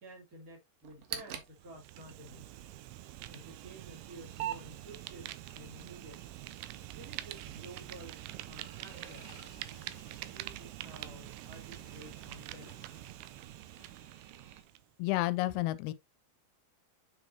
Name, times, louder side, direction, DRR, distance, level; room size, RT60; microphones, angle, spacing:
voice 1, 0.0-2.4 3.3-6.2 6.9-9.3 10.2-12.7, right 1 dB, 25° right, 3.5 m, -52 dB
sound 1, 0.8-14.6, right 11 dB, 70° right, 2.5 m, -48 dB
Fire, 1.5-14.8, right 15 dB, 90° right, 2.6 m, -46 dB
sound 2, 8.2-13.3 13.7-14.1 14.7-14.8, left 2 dB, 55° left, 0.8 m, -61 dB
voice 2, 15.0-15.9, left 18 dB, 85° left, 2.6 m, -30 dB
7.3 x 6.6 x 2.8 m
omnidirectional pair, 4.5 m